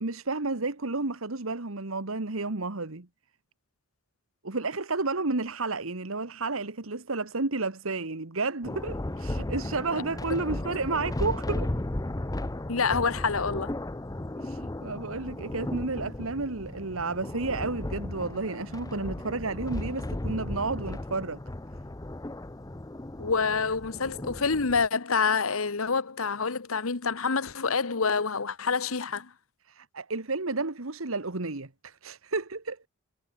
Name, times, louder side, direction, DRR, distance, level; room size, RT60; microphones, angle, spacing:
voice 1, 0.0-3.1 4.4-11.7 14.3-21.4 29.6-32.8, right 3 dB, 85° right, 1.7 m, -31 dB
Thunder, 8.6-24.9, left 1 dB, 15° left, 0.7 m, -35 dB
voice 2, 12.7-13.7 23.2-29.3, left 5 dB, 90° left, 1.2 m, -27 dB
head